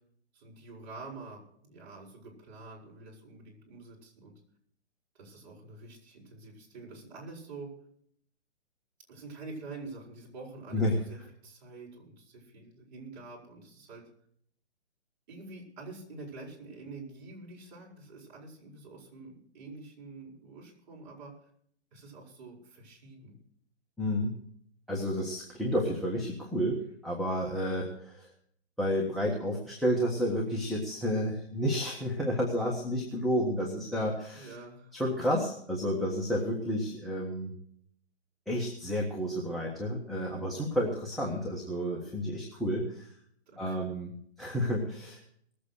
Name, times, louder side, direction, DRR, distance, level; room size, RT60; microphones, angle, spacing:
voice 1, 0.3-4.3 5.2-7.7 9.1-14.0 15.3-21.3 21.9-23.4 34.3-35.0 43.5-43.9, right 3 dB, 40° right, -2 dB, 7.3 m, -47 dB
voice 2, 24.0-24.3 24.9-28.3 28.8-34.5 34.9-37.5 38.5-43.1 43.6-44.1 44.4-45.2, equal, ahead, -3 dB, 1.5 m, -31 dB
19.5 x 8.5 x 6.5 m, 0.64 s
hypercardioid pair, 150°, 34 cm